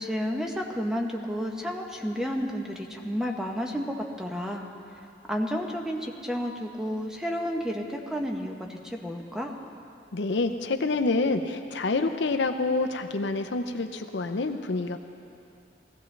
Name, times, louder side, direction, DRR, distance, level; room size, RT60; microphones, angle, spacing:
voice 1, 0.0-4.7 5.3-9.6, equal, 5° right, 1 dB, 0.8 m, -31 dB
voice 2, 10.1-15.0, left 3 dB, 70° left, 6 dB, 0.6 m, -27 dB
19.0 x 15.5 x 3.3 m, 2.6 s
head